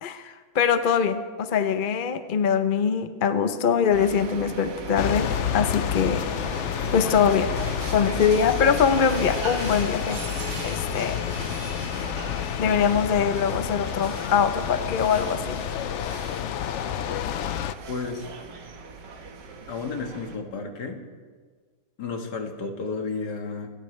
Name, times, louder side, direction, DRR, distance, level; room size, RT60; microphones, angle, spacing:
voice 1, 0.0-6.2 6.7-7.5 7.9-10.2 10.6-11.2 12.6-15.6, left 7 dB, 45° left, 9 dB, 0.7 m, -23 dB
sound 1, 3.9-20.4, right 4 dB, 80° right, 2.0 m, -38 dB
sound 2, 5.0-17.7, left 10 dB, 85° left, 0.6 m, -30 dB
voice 2, 17.9-18.3 19.7-21.0 22.0-23.7, left 4 dB, 70° left, 3 dB, 2.2 m, -32 dB
29.0 x 14.5 x 3.3 m, 1.5 s
omnidirectional pair, 1.8 m